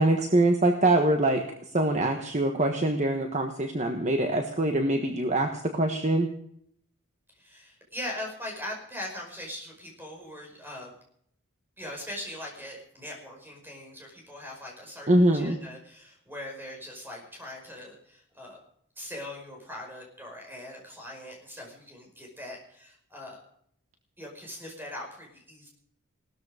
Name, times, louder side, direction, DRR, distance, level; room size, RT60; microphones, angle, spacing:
voice 1, 0.0-1.4 1.7-6.3 15.1-15.5, right 1 dB, 35° right, 4 dB, 1.3 m, -24 dB
voice 2, 7.4-10.9 11.8-18.6 19.0-23.4 24.2-25.7, left 1 dB, 10° right, 0 dB, 5.2 m, -41 dB
18.5 x 13.5 x 5.0 m, 0.67 s
head